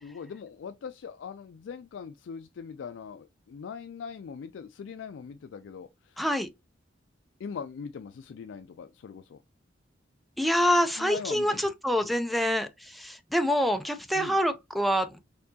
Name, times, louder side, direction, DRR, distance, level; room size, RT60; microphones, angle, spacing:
voice 1, 0.0-6.2 7.4-9.4 11.0-11.6 12.0-12.1 14.1-14.4, left 6 dB, 70° left, 0.3 m, -41 dB
voice 2, 6.2-6.5 10.4-15.1, equal, ahead, 0.4 m, -26 dB
4.3 x 2.8 x 2.7 m
head